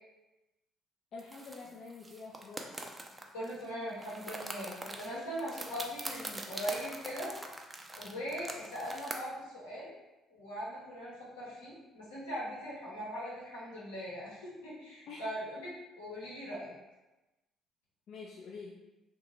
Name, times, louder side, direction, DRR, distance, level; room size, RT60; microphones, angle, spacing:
voice 1, 1.1-2.7 15.1-15.2 18.1-18.8, left 4 dB, 55° left, -2 dB, 0.3 m, -47 dB
sound 1, 1.2-3.6 3.9-9.1, right 1 dB, 20° right, 0.4 m, -43 dB
voice 2, 3.3-7.3 7.9-10.0 10.3-16.7, equal, 85° left, -7 dB, 0.9 m, -40 dB
2.7 x 2.2 x 3.0 m, 1.0 s
hypercardioid pair, 50°, 0 cm